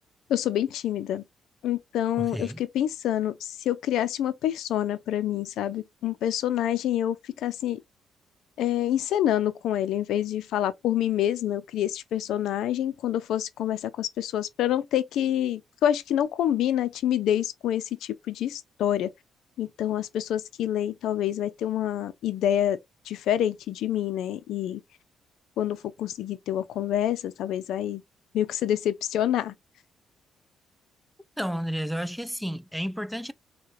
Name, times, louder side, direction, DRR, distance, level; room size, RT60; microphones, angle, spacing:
voice 1, 0.3-1.2 1.6-7.8 8.6-19.1 19.6-22.8 23.1-24.8 25.6-28.0 28.3-29.5, left 11 dB, 80° left, 0.4 m, -27 dB
voice 2, 2.2-2.6 31.4-33.3, equal, ahead, 0.3 m, -31 dB
4.7 x 2.2 x 2.5 m
cardioid pair, 90°, 0 cm